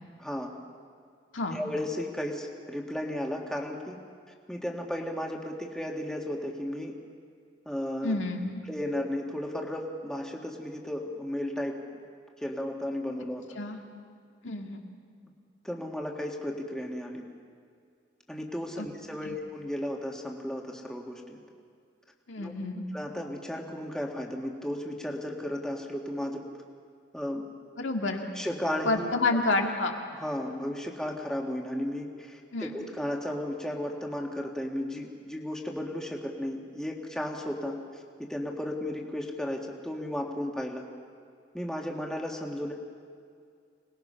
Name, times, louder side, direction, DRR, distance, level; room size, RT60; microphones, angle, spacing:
voice 1, 0.2-0.5 1.5-4.0 4.5-7.0 7.7-8.2 8.7-11.8 12.4-13.6 15.6-17.2 18.3-21.4 22.4-22.5 22.9-26.5 27.1-27.4 28.4-29.4 30.2-40.9 41.5-42.7, left 1 dB, 5° left, 0 dB, 1.8 m, -34 dB
voice 2, 8.0-8.6 13.6-13.8 14.4-14.9 18.8-18.9 19.2-19.4 22.3-22.8 27.8-28.3 28.9-29.9 32.5-32.7, left 2 dB, 80° left, 2 dB, 2.1 m, -29 dB
26.0 x 20.0 x 5.7 m, 2.3 s
head